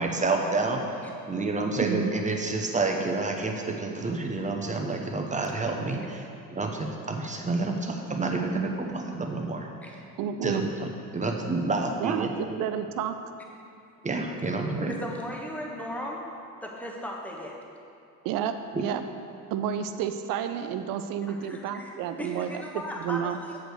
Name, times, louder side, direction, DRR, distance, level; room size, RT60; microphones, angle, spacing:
voice 1, 0.0-9.7 10.4-12.6 14.0-14.9, right 3 dB, 15° right, 2 dB, 1.0 m, -29 dB
voice 2, 1.8-2.1 10.2-10.7 12.0-13.1 18.2-19.0 19.5-22.6 23.0-23.4, right 9 dB, 50° right, 9 dB, 0.6 m, -30 dB
voice 3, 14.9-16.3 16.6-17.5 21.4-21.9 22.2-23.6, equal, 5° left, -1 dB, 1.2 m, -36 dB
7.9 x 4.8 x 6.5 m, 2.5 s
figure-of-eight pair, 55°, 46 cm